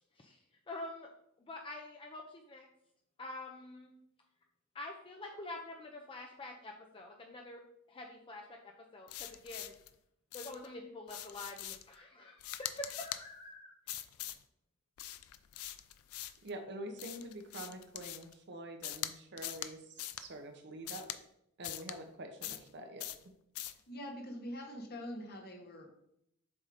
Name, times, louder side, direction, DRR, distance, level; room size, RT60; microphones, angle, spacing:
voice 1, 0.7-1.1 1.4-2.7 3.2-3.9 4.7-7.6 7.9-9.7 10.3-13.7, left 2 dB, 25° left, 1 dB, 0.5 m, -46 dB
sound 1, 9.1-9.9 10.3-10.7 11.1-11.9 12.4-13.2 13.9-14.4 15.0-16.5 17.0-18.3 18.8-19.1 19.4-19.7 20.0-20.3 20.9-21.2 21.6-22.0 22.4-22.7 23.0-23.2 23.6-23.8, left 13 dB, 75° left, 0.4 m, -43 dB
voice 2, 16.4-21.0 21.6-23.1, right 1 dB, 55° right, 5 dB, 0.9 m, -46 dB
voice 3, 23.9-25.9, equal, 45° left, 1 dB, 1.2 m, -44 dB
7.2 x 2.7 x 4.9 m, 0.76 s
head